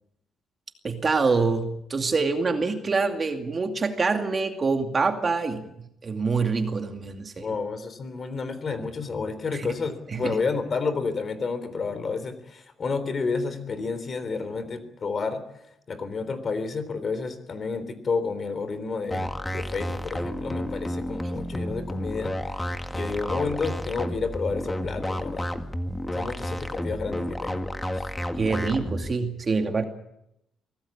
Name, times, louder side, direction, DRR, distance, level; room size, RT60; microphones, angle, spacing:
voice 1, 0.8-5.7 6.0-7.5 9.5-9.7 10.1-10.4 28.3-29.8, right 4 dB, 30° right, 5 dB, 2.4 m, -25 dB
voice 2, 7.4-15.4 15.9-22.4 22.9-25.5 26.1-27.6 27.9-28.1, left 4 dB, 40° left, 12 dB, 3.6 m, -30 dB
sound 1, 19.1-29.1, equal, 10° left, 1.8 m, -31 dB
25.0 x 17.5 x 8.6 m, 0.81 s
cardioid pair, 125°, 0 cm